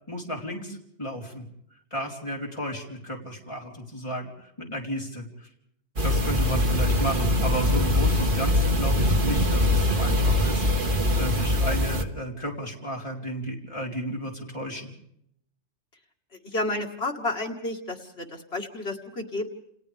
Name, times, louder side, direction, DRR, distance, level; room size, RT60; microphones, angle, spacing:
voice 1, 0.1-1.5 1.9-5.5 6.0-14.9, equal, 25° left, -2 dB, 4.3 m, -33 dB
sound 1, 6.0-12.0, left 1 dB, 50° right, 1.8 m, -23 dB
voice 2, 16.4-19.5, left 2 dB, 65° left, 2 dB, 2.3 m, -31 dB
29.5 x 29.0 x 3.5 m, 0.74 s
omnidirectional pair, 1.1 m